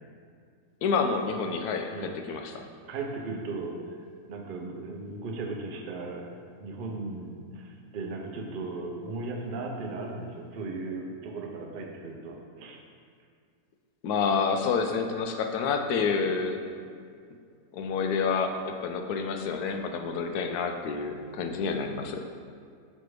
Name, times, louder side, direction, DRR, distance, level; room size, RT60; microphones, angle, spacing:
voice 1, 0.8-2.6 14.0-16.6 17.7-22.2, left 5 dB, 90° left, 5 dB, 1.1 m, -28 dB
voice 2, 1.9-3.9 4.3-12.8, right 3 dB, 55° right, 2 dB, 0.6 m, -37 dB
6.1 x 3.3 x 4.7 m, 2.2 s
omnidirectional pair, 1.6 m